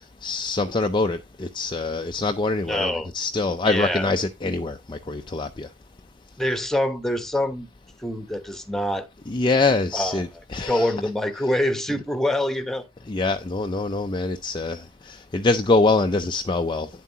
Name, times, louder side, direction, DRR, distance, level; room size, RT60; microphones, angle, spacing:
voice 1, 0.0-5.7 9.3-10.9 11.4-11.6 11.9-12.0 13.1-16.9, left 3 dB, 25° left, 0.5 m, -24 dB
voice 2, 2.7-3.1 3.6-4.1 6.4-7.7 8.0-9.1 9.9-10.2 10.7-12.9, left 1 dB, ahead, 1.1 m, -25 dB
9.5 x 7.4 x 2.8 m
head